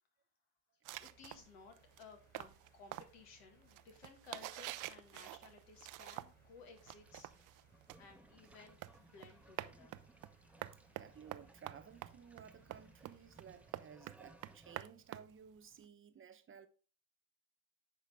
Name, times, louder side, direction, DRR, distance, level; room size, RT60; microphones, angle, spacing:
sound 1, 0.9-13.7, right 3 dB, 25° left, 2.7 m, -70 dB
sound 2, 0.9-6.5 6.8-15.8, right 16 dB, 55° right, 0.5 m, -48 dB
voice 1, 1.0-7.5 8.0-10.0, left 4 dB, 80° left, 1.8 m, -58 dB
sound 3, 6.3-14.8, right 1 dB, 5° right, 0.6 m, -64 dB
voice 2, 10.9-16.7, right 7 dB, 35° right, 1.0 m, -57 dB
10.0 x 3.8 x 3.5 m
supercardioid pair, 85°, 37 cm